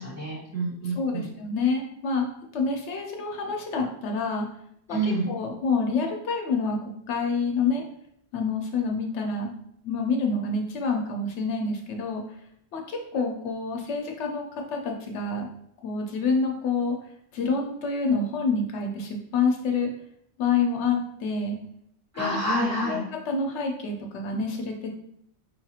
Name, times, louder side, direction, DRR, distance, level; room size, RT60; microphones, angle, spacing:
voice 1, 0.0-1.3 4.9-5.3 22.1-23.0, right 1 dB, 15° right, -7 dB, 1.1 m, -28 dB
voice 2, 0.8-2.3 2.5-4.5 4.9-7.8 8.3-9.5 9.8-12.2 12.7-15.5 15.8-17.0 17.3-19.9 20.4-21.6 22.1-22.4 22.8-23.0 23.3-24.9, left 4 dB, 80° left, 2 dB, 0.9 m, -27 dB
4.7 x 2.4 x 2.8 m, 0.71 s
omnidirectional pair, 1.2 m